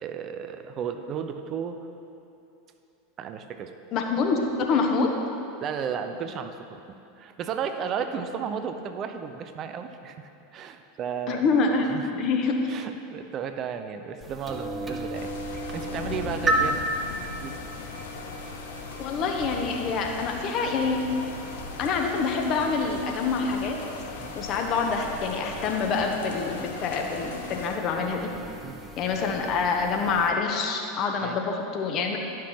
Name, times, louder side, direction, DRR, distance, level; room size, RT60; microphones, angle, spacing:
voice 1, 0.0-1.8 3.2-3.7 5.6-6.8 7.2-11.4 11.9-12.2 12.7-15.3 15.7-16.8 17.4-17.6 24.2-24.3 28.6-28.8 31.2-31.4, right 7 dB, 35° right, 8 dB, 0.4 m, -34 dB
voice 2, 3.9-5.1 11.3-11.9 12.2-12.6 19.0-21.1 21.8-23.8 24.4-28.3 29.0-32.2, left 4 dB, 40° left, 3 dB, 0.9 m, -26 dB
sound 1, 14.2-30.3, right 1 dB, 15° right, 0.8 m, -35 dB
sound 2, 15.1-27.8, left 5 dB, 65° left, 0.6 m, -39 dB
11.0 x 5.9 x 3.1 m, 2.8 s
figure-of-eight pair, 80°, 0 cm